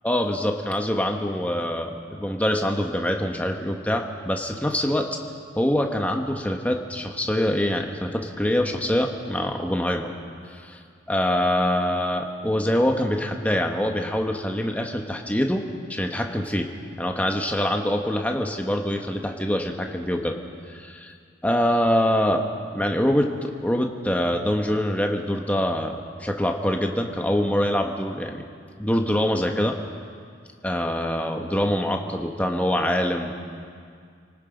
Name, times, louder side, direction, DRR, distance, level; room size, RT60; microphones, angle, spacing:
voice 1, 0.0-5.2 5.6-10.1 10.5-10.8 11.1-16.7 17.0-20.3 20.7-21.1 21.4-22.4 22.7-28.4 28.8-29.8 30.6-33.3, left 1 dB, 10° left, 2 dB, 1.4 m, -24 dB
29.5 x 19.0 x 5.2 m, 2.2 s
head